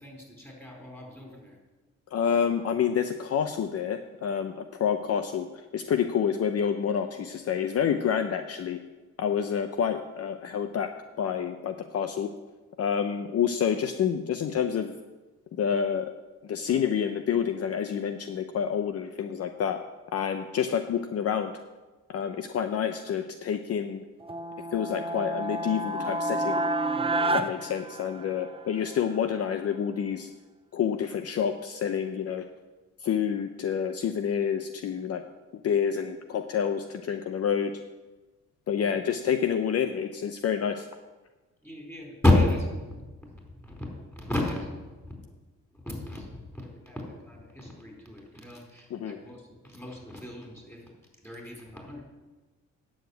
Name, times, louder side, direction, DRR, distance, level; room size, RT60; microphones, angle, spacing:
voice 1, 0.0-1.6 38.7-39.0 41.6-45.2 45.7-50.8 51.2-52.0, left 1 dB, 10° left, -1 dB, 4.4 m, -31 dB
voice 2, 2.1-5.5 5.7-8.8 9.2-10.9 11.2-12.3 12.8-14.9 15.5-16.1 16.4-19.8 20.1-21.5 22.1-24.0 24.7-26.6 27.3-30.3 30.7-32.4 33.0-35.2 35.6-37.7 38.7-40.9 48.9-49.2, left 8 dB, 55° left, 8 dB, 0.7 m, -28 dB
sound 1, 24.2-28.6, right 1 dB, 20° right, 0.7 m, -29 dB
9.6 x 7.1 x 7.9 m, 1.2 s
cardioid pair, 90°, 30 cm